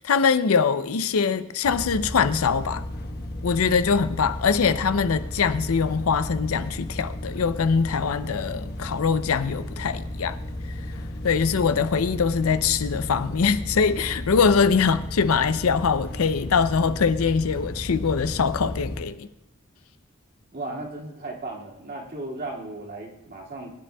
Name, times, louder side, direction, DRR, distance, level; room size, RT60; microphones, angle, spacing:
voice 1, 0.0-2.8 3.4-10.4 11.2-19.3, left 5 dB, 75° left, 0.5 m, -23 dB
sound 1, 1.6-19.0, left 1 dB, 50° left, 1.1 m, -34 dB
voice 2, 20.5-23.7, right 2 dB, 45° right, 2.3 m, -35 dB
21.5 x 10.0 x 2.3 m
head